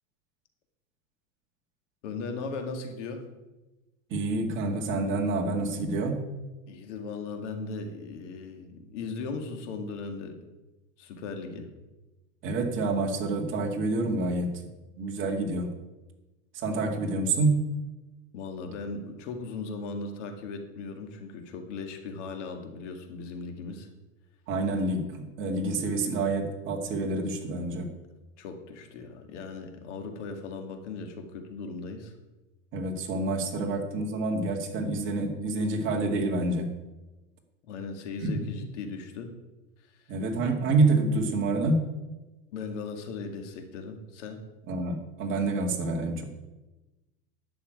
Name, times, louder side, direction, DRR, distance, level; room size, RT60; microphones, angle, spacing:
voice 1, 2.0-3.3 6.7-10.4 11.0-11.7 18.3-23.9 28.4-32.1 37.7-39.3 42.5-44.4, left 4 dB, 65° left, 5 dB, 2.2 m, -38 dB
voice 2, 4.1-6.2 12.4-14.5 15.0-15.7 16.5-17.6 24.5-27.9 32.7-36.7 38.2-38.3 40.1-41.9 44.7-46.2, right 2 dB, 30° right, 1 dB, 2.2 m, -27 dB
11.5 x 6.4 x 9.1 m, 1.1 s
supercardioid pair, 165°, 39 cm